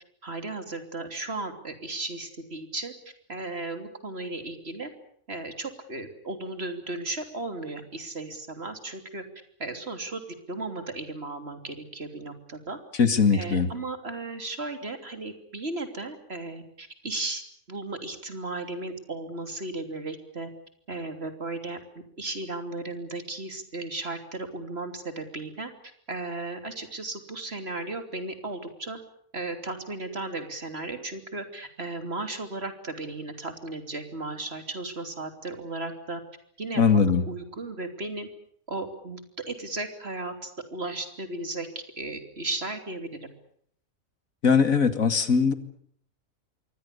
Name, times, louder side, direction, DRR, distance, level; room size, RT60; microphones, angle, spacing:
voice 1, 0.2-2.9 3.3-4.9 5.3-9.2 9.6-10.2 10.5-12.8 13.3-17.4 17.7-20.5 20.9-21.8 22.2-25.7 26.1-29.0 29.3-36.2 36.6-38.3 38.7-39.2 39.5-41.7 42.0-43.1, right 2 dB, 50° right, 7 dB, 3.4 m, -35 dB
voice 2, 13.0-13.7 36.8-37.2 44.4-45.5, left 5 dB, 80° left, 10 dB, 2.5 m, -20 dB
27.5 x 23.5 x 6.7 m, 0.64 s
omnidirectional pair, 1.4 m